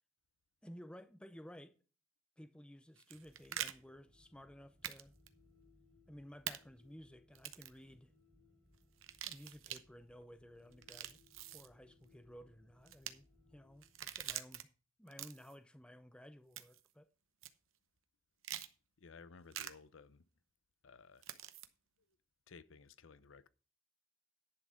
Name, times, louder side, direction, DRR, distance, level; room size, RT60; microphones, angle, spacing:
voice 1, 0.6-1.8 2.4-5.1 6.1-8.1 9.2-11.2 11.5-14.7 15.0-17.1, equal, 5° left, 0.6 m, -55 dB
sound 1, 3.0-3.7 4.8-5.0 5.3-5.4 6.5-6.6 7.3-7.8 9.0-9.8 10.7-11.7 12.9-13.1 13.8-14.6 15.1-15.5 16.6-16.9 17.4-17.5 18.4-18.7 19.5-19.7 21.2-21.7, right 11 dB, 85° right, 0.9 m, -44 dB
sound 2, 3.1-14.4, left 2 dB, 55° right, 3.6 m, -69 dB
voice 2, 19.0-20.2 20.8-21.3 22.5-23.5, left 5 dB, 75° left, 0.6 m, -57 dB
11.0 x 6.2 x 4.9 m
head